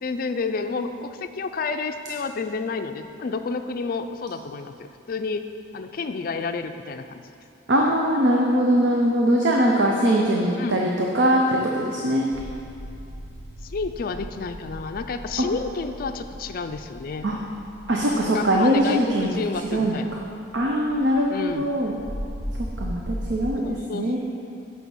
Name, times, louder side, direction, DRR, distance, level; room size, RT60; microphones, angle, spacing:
voice 1, 0.0-5.5 5.7-7.2 10.6-10.9 13.6-17.3 18.2-20.2 21.3-21.7 23.6-24.2, left 4 dB, 50° left, 7 dB, 0.4 m, -30 dB
voice 2, 7.7-12.3 15.4-15.5 17.2-17.4 17.9-19.3 19.7-20.0 20.5-21.9 22.8-24.2, equal, 65° right, -1 dB, 0.7 m, -21 dB
sound 1, 12.3-23.5, equal, 35° right, 0.9 m, -38 dB
6.1 x 6.1 x 7.1 m, 2.5 s
head